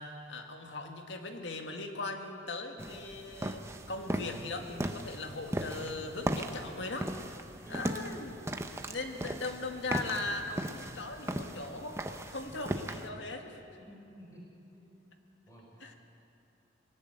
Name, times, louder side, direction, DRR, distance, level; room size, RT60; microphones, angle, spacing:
voice 1, 0.0-3.6 3.9-7.1 7.7-8.4 8.9-12.0 12.3-13.6 15.8-15.9, left 3 dB, 85° left, 4 dB, 1.9 m, -39 dB
sound 1, 2.8-13.1, right 1 dB, 15° right, 0.9 m, -38 dB
voice 2, 7.6-8.0 9.3-9.4 13.8-14.4 14.7-15.0 15.5-16.0, right 1 dB, 20° left, -3 dB, 4.8 m, -52 dB
20.5 x 18.0 x 7.9 m, 2.7 s
head